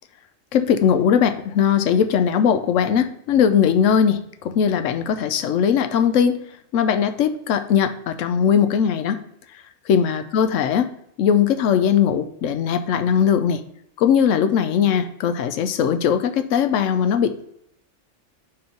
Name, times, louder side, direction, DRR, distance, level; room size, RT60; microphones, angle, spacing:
voice 1, 0.5-6.4 6.7-9.2 9.9-10.9 11.2-13.6 14.0-17.4, left 8 dB, 90° left, 10 dB, 1.0 m, -19 dB
5.4 x 4.5 x 5.1 m, 0.74 s
omnidirectional pair, 1.3 m